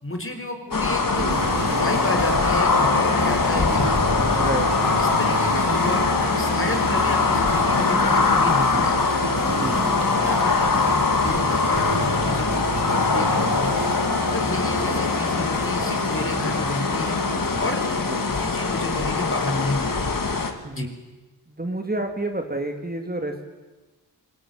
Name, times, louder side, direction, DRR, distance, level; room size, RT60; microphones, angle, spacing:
voice 1, 0.0-4.0 5.0-6.1 6.4-9.1 9.9-10.7 11.2-12.6 13.1-13.8 14.3-17.2 17.6-17.8 18.3-20.1 20.7-20.9, left 1 dB, 30° left, 5 dB, 4.1 m, -31 dB
sound 1, 0.7-20.5, left 4 dB, 50° left, 2.7 m, -22 dB
sound 2, 1.2-20.5, right 3 dB, 65° right, 7.1 m, -31 dB
voice 2, 3.9-4.7 9.5-9.8 18.1-18.2 20.6-20.9 21.5-23.4, right 2 dB, 20° right, 4 dB, 3.1 m, -30 dB
25.5 x 21.5 x 9.2 m, 1.2 s
wide cardioid pair, 115°, 42 cm